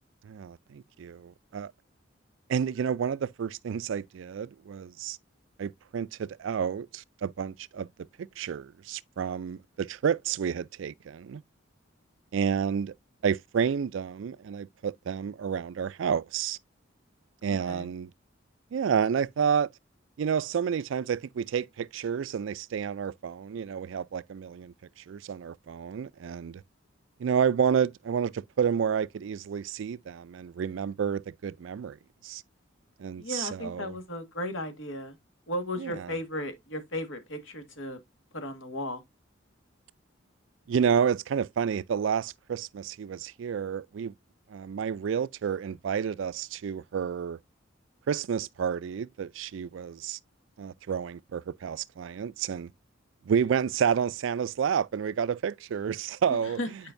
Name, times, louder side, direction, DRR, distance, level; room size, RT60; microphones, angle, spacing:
voice 1, 0.2-1.7 2.5-5.2 5.6-7.9 8.2-11.4 12.3-12.9 13.2-16.6 17.4-18.1 18.7-19.7 20.2-26.6 27.2-32.0 32.2-32.4 33.0-33.9 35.8-35.9 40.7-44.1 44.5-47.4 48.1-50.2 50.6-52.7 53.3-56.6, right 7 dB, 75° right, 0.3 m, -30 dB
voice 2, 17.5-17.9 33.2-35.2 35.5-38.0 38.3-39.0 56.3-56.7, left 1 dB, 75° left, 1.7 m, -35 dB
8.8 x 5.2 x 2.6 m
head